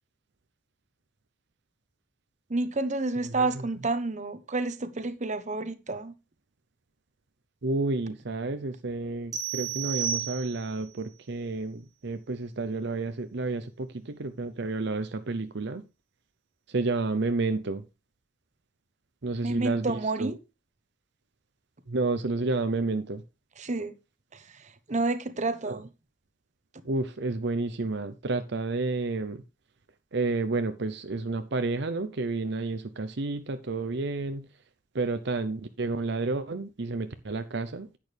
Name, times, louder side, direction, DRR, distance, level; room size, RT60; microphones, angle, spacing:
voice 1, 2.5-6.1 19.4-20.4 23.6-23.9 24.3-25.9, right 3 dB, 40° right, 1.0 m, -30 dB
voice 2, 7.6-15.8 16.7-17.9 19.2-20.3 21.9-23.2 25.7-25.8 26.8-29.4 30.1-34.4 34.9-38.0, right 3 dB, 60° right, 0.7 m, -30 dB
sound 1, 9.3-10.9, right 9 dB, 20° right, 1.6 m, -32 dB
10.5 x 8.7 x 3.4 m
head